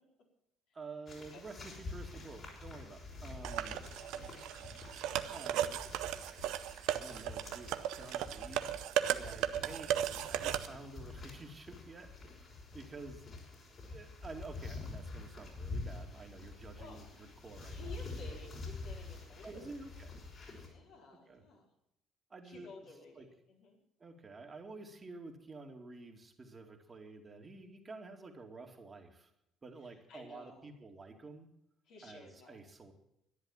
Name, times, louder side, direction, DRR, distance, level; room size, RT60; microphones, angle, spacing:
voice 1, 0.7-3.8 5.3-6.1 6.9-10.0 10.3-13.3 13.9-18.0 19.4-20.1 21.3-21.4 22.3-22.7 23.2-23.3 24.0-29.3 29.6-31.5 32.0-32.9, right 3 dB, 30° right, 3 dB, 2.4 m, -50 dB
sound 1, 1.1-20.7, left 3 dB, 50° left, 5.5 m, -47 dB
sound 2, 3.4-10.7, right 11 dB, 65° right, 0.7 m, -36 dB
voice 2, 3.9-4.6 9.4-10.1 16.8-17.0 17.7-19.8 20.6-21.6 22.4-23.8 29.8-30.7 31.9-32.6, left 3 dB, 65° left, -2 dB, 4.3 m, -54 dB
12.5 x 10.5 x 7.3 m, 0.80 s
hypercardioid pair, 55°, 0 cm